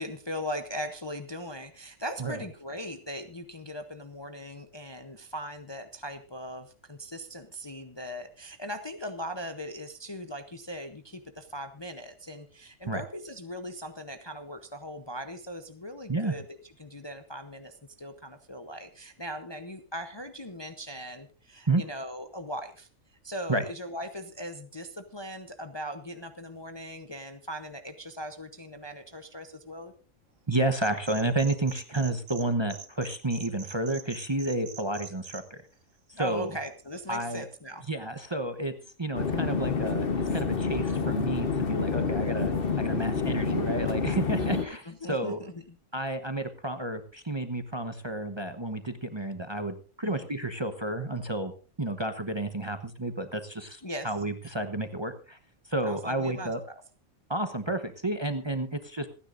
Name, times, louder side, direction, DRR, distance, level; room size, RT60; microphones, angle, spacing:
voice 1, 0.0-22.9 23.2-29.9 36.1-37.9 44.4-45.8 50.0-50.3 53.8-54.1 55.8-56.8, equal, 25° left, 7 dB, 0.7 m, -39 dB
voice 2, 30.5-35.6 36.2-36.5 37.1-37.5 37.9-38.7 39.0-42.5 42.8-45.4 45.9-51.5 51.8-55.4 55.7-56.6 57.3-59.1, right 2 dB, 25° right, 8 dB, 0.9 m, -31 dB
sound 1, 30.8-32.4 32.7-35.4, right 5 dB, 70° right, 1.8 m, -44 dB
sound 2, 39.1-44.6, left 5 dB, 45° left, 1.2 m, -28 dB
27.0 x 10.0 x 2.6 m, 0.36 s
omnidirectional pair, 1.4 m